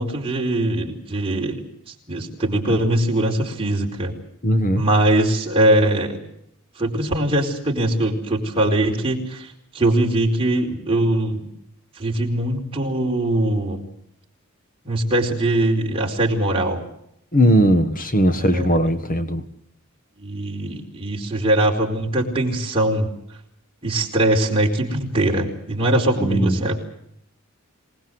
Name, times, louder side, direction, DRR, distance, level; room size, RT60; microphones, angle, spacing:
voice 1, 0.0-1.6 2.1-4.1 4.7-6.2 6.8-11.5 12.0-13.8 14.8-16.8 18.4-18.9 20.2-23.1 23.8-26.8, right 1 dB, 25° right, -1 dB, 4.6 m, -21 dB
voice 2, 4.4-4.8 17.3-19.4 26.2-26.6, equal, 40° left, 8 dB, 1.5 m, -18 dB
26.5 x 19.5 x 7.9 m, 0.77 s
head